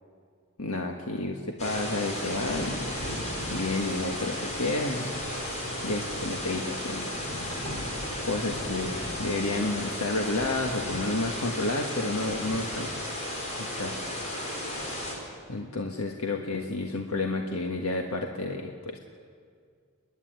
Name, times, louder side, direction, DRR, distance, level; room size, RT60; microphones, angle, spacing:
voice 1, 0.6-2.9 3.5-5.2 5.8-7.1 8.2-12.9 13.6-14.0 15.5-19.0, left 2 dB, 85° left, 2 dB, 1.5 m, -30 dB
sound 1, 1.6-15.1, left 1 dB, 35° left, 4.7 m, -34 dB
29.5 x 11.0 x 9.5 m, 2.1 s
head